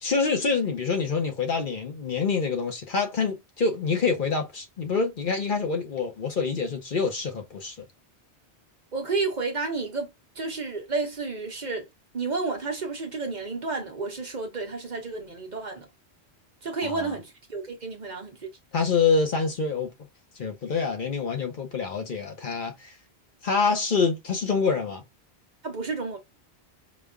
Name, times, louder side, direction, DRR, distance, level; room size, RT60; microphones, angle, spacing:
voice 1, 0.0-7.8 16.8-17.1 18.7-19.9 20.4-22.9 23.4-25.0, left 4 dB, 55° left, 0.9 m, -26 dB
voice 2, 8.9-10.1 10.4-11.9 12.1-15.9 16.6-18.5 25.6-26.2, right 4 dB, 45° right, 0.9 m, -31 dB
5.0 x 2.3 x 2.3 m
omnidirectional pair, 1.1 m